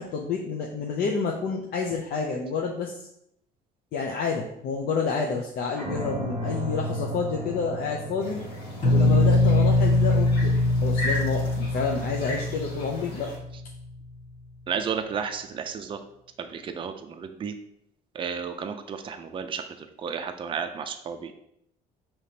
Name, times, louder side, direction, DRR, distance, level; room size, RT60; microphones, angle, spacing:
voice 1, 0.0-3.1 3.9-8.4 8.9-13.3, left 5 dB, 60° left, 0 dB, 0.5 m, -29 dB
sound 1, 5.8-9.6, equal, 5° right, 1.3 m, -34 dB
sound 2, 8.2-13.4, left 1 dB, 85° left, 1.5 m, -38 dB
sound 3, 8.8-13.7, left 2 dB, 45° left, 1.3 m, -22 dB
voice 2, 14.7-16.0 16.4-17.5 18.1-19.6 20.0-21.3, right 6 dB, 30° right, 6 dB, 0.4 m, -32 dB
5.0 x 2.9 x 2.8 m, 0.75 s
cardioid pair, 110°, 17 cm